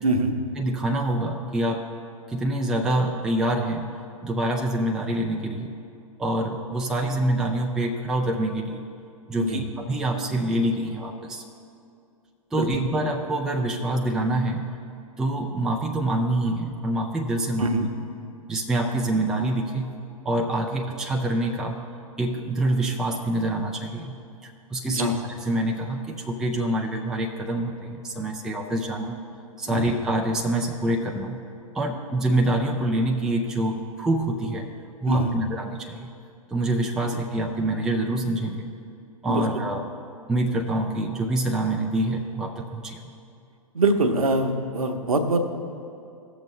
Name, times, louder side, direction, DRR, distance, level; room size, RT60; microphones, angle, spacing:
voice 1, 0.0-0.3 9.3-9.6 12.6-12.8 17.6-17.9 24.9-25.1 29.7-29.9 35.1-35.3 37.0-37.2 39.3-39.6 43.7-45.4, right 2 dB, 70° right, 5 dB, 1.0 m, -24 dB
voice 2, 0.6-1.9 2.3-3.9 4.2-5.8 6.2-8.8 9.3-11.4 12.5-14.7 15.2-17.9 18.5-19.9 20.2-21.8 22.2-24.2 24.4-29.2 29.6-31.4 31.7-34.7 35.0-36.1 36.5-38.7 39.2-39.8 40.3-43.1, right 1 dB, 5° right, 1 dB, 0.4 m, -26 dB
16.5 x 6.8 x 3.1 m, 2.5 s
figure-of-eight pair, 115°, 19 cm